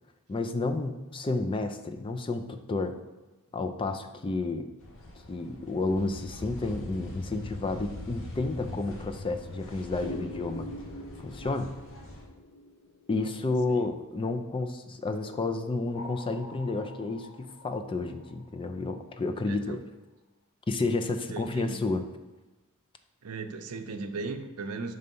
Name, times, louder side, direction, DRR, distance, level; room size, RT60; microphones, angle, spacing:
voice 1, 0.3-3.0 3.5-4.7 5.3-10.7 11.2-11.7 13.1-19.8 20.7-22.0, left 3 dB, 25° left, 7 dB, 0.4 m, -31 dB
sound 1, 4.8-12.3, left 2 dB, 60° left, 1.0 m, -42 dB
sound 2, 10.0-14.3 15.2-19.0, left 1 dB, 85° left, 0.6 m, -45 dB
voice 2, 19.5-19.8 21.3-21.8 23.2-25.0, right 3 dB, 85° right, 8 dB, 0.6 m, -37 dB
5.4 x 3.3 x 5.3 m, 1.2 s
head